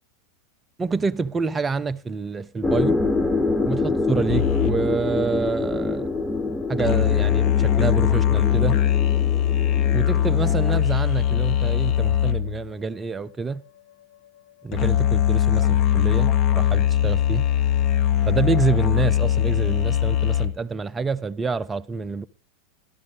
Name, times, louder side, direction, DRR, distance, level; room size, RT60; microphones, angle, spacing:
voice 1, 0.8-3.0 3.7-6.1 6.7-8.8 9.9-13.6 14.6-17.4 18.3-22.3, right 4 dB, 20° right, 0.7 m, -27 dB
sound 1, 2.6-10.8, left 3 dB, 10° left, 1.3 m, -26 dB
sound 2, 4.3-12.7 14.7-20.5, left 10 dB, 40° left, 1.3 m, -21 dB
14.0 x 12.0 x 3.9 m
figure-of-eight pair, 85°, 0 cm